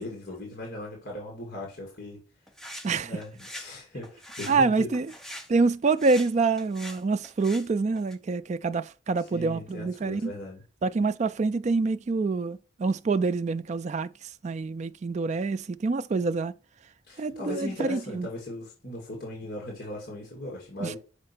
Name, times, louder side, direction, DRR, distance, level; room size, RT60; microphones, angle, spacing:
voice 1, 0.0-2.2 3.0-4.9 9.2-10.6 17.1-21.0, left 1 dB, 45° left, 2.3 m, -38 dB
sound 1, 2.5-2.9 3.2-3.7 4.0-4.6 4.9-5.5 5.9-6.3 6.6-7.7 8.0-8.2, equal, ahead, 0.7 m, -42 dB
voice 2, 4.5-5.1 5.5-10.3 10.8-14.1 14.4-16.5 17.2-18.3 20.8-21.0, right 4 dB, 35° right, 0.3 m, -26 dB
6.5 x 4.3 x 5.9 m
head